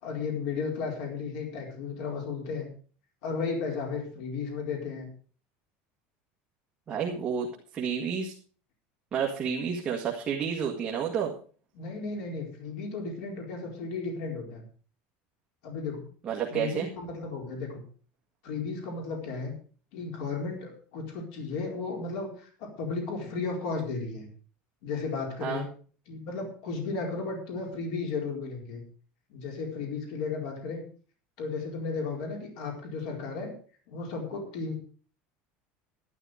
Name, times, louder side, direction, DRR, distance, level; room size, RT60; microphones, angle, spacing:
voice 1, 0.0-2.7 3.2-5.1 11.7-14.6 15.6-16.0 16.5-17.8 18.4-19.5 19.9-24.3 24.8-25.7 26.1-28.8 29.3-30.8 31.4-33.5 33.9-34.7, left 4 dB, 65° left, 1 dB, 4.4 m, -34 dB
voice 2, 6.9-7.5 7.7-8.3 9.1-11.3 16.2-16.9 25.4-25.6, right 7 dB, 20° right, -1 dB, 1.7 m, -30 dB
12.0 x 11.0 x 4.9 m, 0.41 s
cardioid pair, 180°, 5 cm